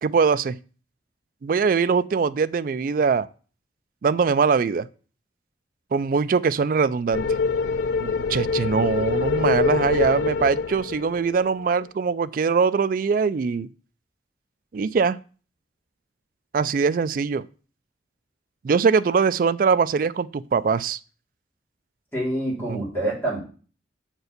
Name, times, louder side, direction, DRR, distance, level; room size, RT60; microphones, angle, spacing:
voice 1, 0.0-0.6 1.4-3.3 4.0-4.9 5.9-7.3 8.0-13.7 14.7-15.2 16.5-17.4 18.6-21.0 22.7-22.8, right 5 dB, 45° right, 0.3 m, -22 dB
sound 1, 7.1-11.5, left 4 dB, 70° left, 0.3 m, -24 dB
voice 2, 22.1-23.4, right 1 dB, 10° left, 3.3 m, -26 dB
6.7 x 4.5 x 6.6 m
head